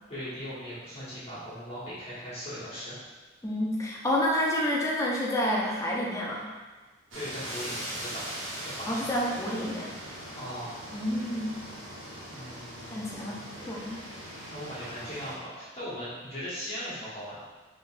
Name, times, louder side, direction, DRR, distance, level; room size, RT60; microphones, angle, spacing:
voice 1, 0.1-3.0 7.1-8.2 8.6-9.1 10.3-10.7 12.3-13.5 14.5-17.4, equal, 30° left, -10 dB, 1.3 m, -39 dB
voice 2, 3.4-6.5 8.9-9.9 10.9-11.6 12.9-14.0, left 1 dB, 15° left, -3 dB, 0.5 m, -29 dB
sound 1, 7.1-15.4, right 1 dB, 75° right, 0.8 m, -40 dB
3.9 x 3.4 x 2.5 m, 1.3 s
head